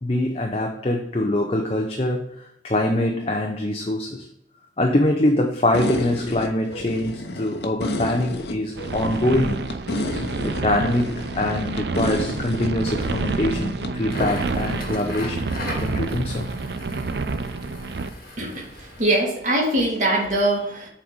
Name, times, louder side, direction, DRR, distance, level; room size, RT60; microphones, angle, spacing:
voice 1, 0.0-2.3 2.6-4.3 4.8-9.6 10.4-15.5 15.8-16.5, left 1 dB, 35° left, 2 dB, 0.7 m, -23 dB
sound 1, 5.7-13.9, left 1 dB, 75° left, 0.9 m, -31 dB
sound 2, 8.8-18.1, right 3 dB, 75° right, 0.5 m, -29 dB
Crackle, 14.0-19.2, left 1 dB, 55° left, 2.0 m, -36 dB
voice 2, 18.4-20.9, right 1 dB, 45° right, -2 dB, 2.0 m, -22 dB
7.3 x 4.1 x 5.1 m, 0.79 s
head